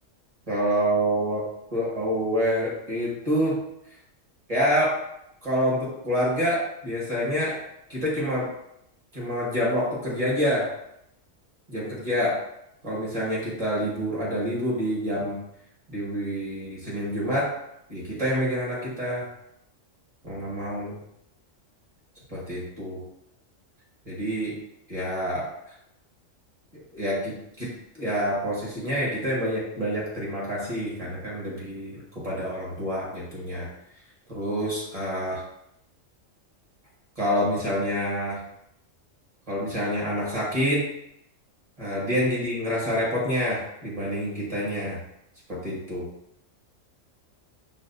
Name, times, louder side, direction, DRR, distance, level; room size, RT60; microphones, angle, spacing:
voice 1, 0.5-1.4 1.7-3.6 4.5-5.0 5.4-7.6 7.9-8.5 9.1-10.7 11.7-12.4 12.8-15.4 15.9-17.5 17.9-19.3 20.2-21.0 22.3-23.0 24.0-24.6 24.9-25.5 26.7-33.7 34.3-35.4 37.2-38.4 39.5-40.9 41.8-45.0 45.5-46.1, equal, 30° right, -6 dB, 1.4 m, -27 dB
5.7 x 2.4 x 2.7 m, 0.79 s
omnidirectional pair, 1.3 m